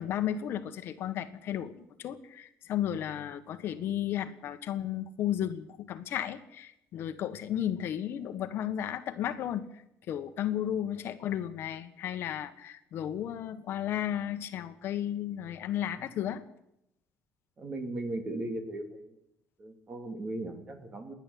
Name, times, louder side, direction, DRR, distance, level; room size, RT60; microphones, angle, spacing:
voice 1, 0.0-9.8 10.1-16.4, left 10 dB, 55° left, 9 dB, 1.5 m, -34 dB
voice 2, 17.6-19.2 19.6-21.1, right 2 dB, 25° right, 6 dB, 3.1 m, -37 dB
28.5 x 11.0 x 8.7 m, 0.81 s
cardioid pair, 165°, 5 cm